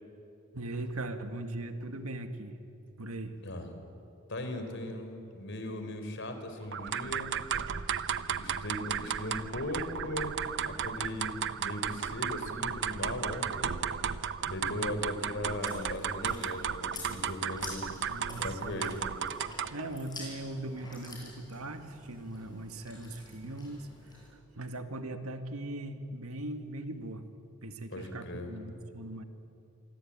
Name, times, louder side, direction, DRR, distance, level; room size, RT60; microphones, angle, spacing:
voice 1, 0.5-2.6 3.0-3.4 11.3-11.4 14.6-15.0 18.0-18.9 19.7-23.9 24.5-27.3 27.6-29.2, right 1 dB, 85° right, 7 dB, 2.0 m, -40 dB
voice 2, 4.3-7.3 8.3-10.4 10.6-13.8 14.4-17.8 18.4-19.0 27.9-28.5, left 1 dB, 60° left, 7 dB, 4.0 m, -38 dB
sound 1, 6.7-19.9, right 7 dB, 55° right, 0.9 m, -34 dB
Chewing mastication, 15.4-24.3, left 2 dB, 20° left, 7.8 m, -49 dB
27.5 x 24.0 x 8.9 m, 2.7 s
head